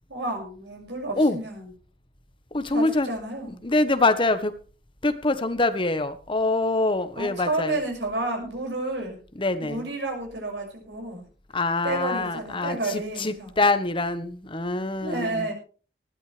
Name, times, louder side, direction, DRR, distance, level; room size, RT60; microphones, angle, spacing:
voice 1, 0.1-1.7 2.7-3.6 7.2-9.2 9.6-11.2 11.8-13.5 15.0-15.5, right 2 dB, 85° right, 6.4 m, -31 dB
voice 2, 2.5-3.1 3.5-4.6 5.0-7.8 9.3-9.9 11.5-15.5, left 2 dB, 30° left, 1.3 m, -25 dB
19.5 x 13.0 x 3.4 m
head